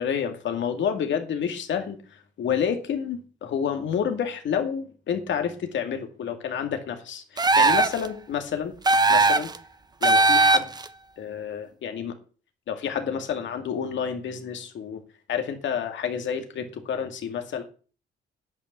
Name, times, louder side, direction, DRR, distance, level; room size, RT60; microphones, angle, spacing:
voice 1, 0.0-8.7 9.1-9.5 10.0-10.7 11.2-12.1 12.7-15.0 15.3-17.6, left 7 dB, 70° left, 6 dB, 2.2 m, -29 dB
sound 1, 7.4-8.1 8.8-9.6 10.0-10.9, right 3 dB, 20° right, 0.8 m, -19 dB
10.5 x 5.8 x 8.1 m, 0.39 s
cardioid pair, 90°, 20 cm